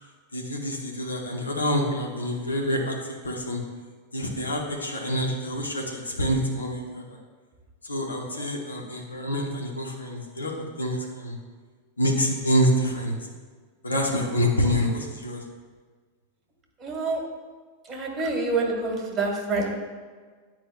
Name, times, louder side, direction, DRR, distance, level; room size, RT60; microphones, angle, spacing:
voice 1, 0.3-2.9 3.2-3.6 4.1-6.8 7.8-10.5 10.8-11.3 12.0-13.1 13.8-15.4, equal, 80° left, 1 dB, 0.9 m, -26 dB
voice 2, 16.8-17.2 17.9-19.8, right 3 dB, 20° right, 1 dB, 1.3 m, -27 dB
9.8 x 4.6 x 2.2 m, 1.5 s
figure-of-eight pair, 90°, 0 cm